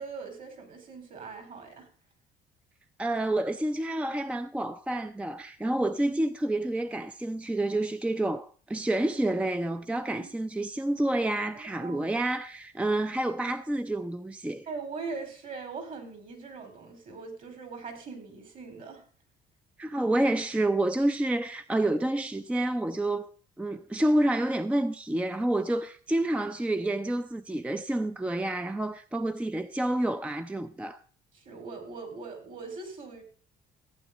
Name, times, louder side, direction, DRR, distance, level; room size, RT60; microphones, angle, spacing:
voice 1, 0.0-1.9 10.1-10.3 11.8-12.1 14.7-19.0 31.3-33.2, right 4 dB, 55° right, 4.5 m, -41 dB
voice 2, 3.0-14.7 19.8-23.3 23.6-31.0, right 1 dB, 5° right, 0.5 m, -28 dB
15.0 x 9.1 x 3.9 m
cardioid pair, 110°, 17 cm